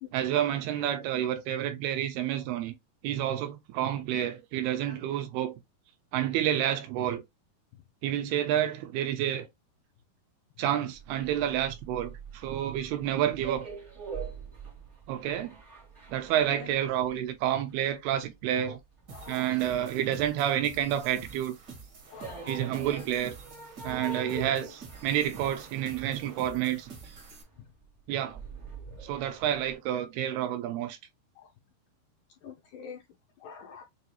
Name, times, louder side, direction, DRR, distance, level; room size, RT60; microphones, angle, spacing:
voice 1, 0.1-2.7 3.0-5.6 6.1-7.2 8.0-9.5 10.6-13.7 15.1-15.6 16.1-18.8 19.3-21.5 22.5-23.4 23.8-26.9 28.1-28.4 29.0-31.0, right 11 dB, 80° right, 2.6 m, -29 dB
sound 1, 11.0-21.0 21.3-29.7, right 5 dB, 40° right, 0.4 m, -44 dB
voice 2, 19.1-19.5 22.1-22.7 26.0-26.1 31.4-31.5 32.4-33.0 33.4-33.8, left 6 dB, 80° left, 1.9 m, -45 dB
sound 2, 19.1-27.4, right 4 dB, 65° right, 1.1 m, -48 dB
6.8 x 2.4 x 2.9 m
omnidirectional pair, 4.6 m